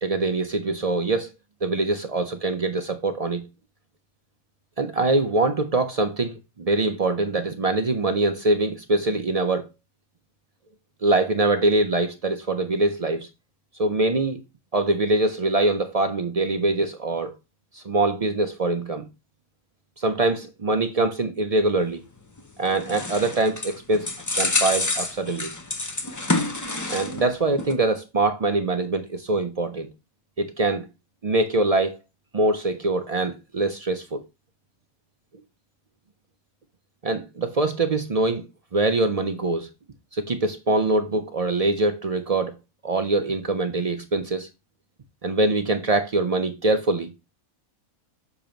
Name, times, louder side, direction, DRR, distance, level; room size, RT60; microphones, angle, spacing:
voice 1, 0.0-1.3 1.6-3.4 4.8-6.3 6.6-9.6 11.0-13.3 13.8-14.4 14.7-17.3 17.8-19.0 20.0-22.0 22.6-24.1 24.3-25.5 26.9-29.9 30.4-30.9 31.2-32.0 32.3-34.2 37.0-38.4 38.7-39.7 40.1-42.5 42.8-44.5 45.2-47.1, right 2 dB, 60° right, 0.4 m, -23 dB
sound 1, 22.4-27.3 27.6-27.7, left 2 dB, 25° left, 0.4 m, -27 dB
7.0 x 3.0 x 5.1 m
omnidirectional pair, 1.5 m